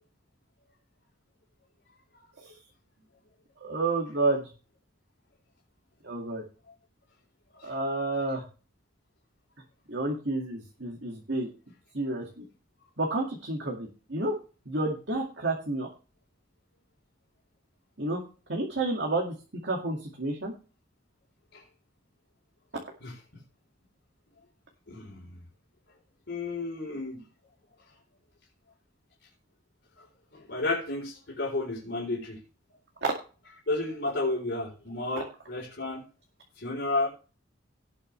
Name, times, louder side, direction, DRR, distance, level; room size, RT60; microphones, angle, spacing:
voice 1, 3.6-4.4 6.0-6.4 7.6-8.4 9.9-11.5 11.9-12.4 13.0-14.3 14.7-15.9 18.0-18.2 18.5-19.3 19.6-20.5 33.0-33.1, right 2 dB, 65° right, 0 dB, 2.3 m, -30 dB
voice 2, 24.9-25.4 26.3-27.2 30.3-32.4 33.7-36.0 36.6-37.1, left 2 dB, 65° left, -3 dB, 4.2 m, -32 dB
18.5 x 6.7 x 3.4 m, 0.35 s
head